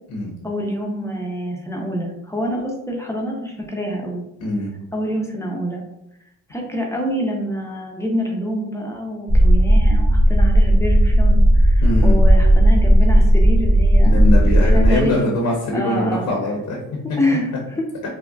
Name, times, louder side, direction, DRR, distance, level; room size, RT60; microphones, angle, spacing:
voice 1, 0.4-4.2 4.9-5.8 6.5-14.2 14.6-15.2 15.7-16.3 17.2-17.5, equal, 10° left, -1 dB, 0.6 m, -26 dB
voice 2, 4.4-4.7 11.8-12.2 14.0-16.8, left 1 dB, 70° left, -1 dB, 0.8 m, -22 dB
sound 1, 9.3-15.0, equal, 30° right, 0.7 m, -13 dB
3.7 x 2.1 x 2.3 m, 0.83 s
cardioid pair, 90°, 30 cm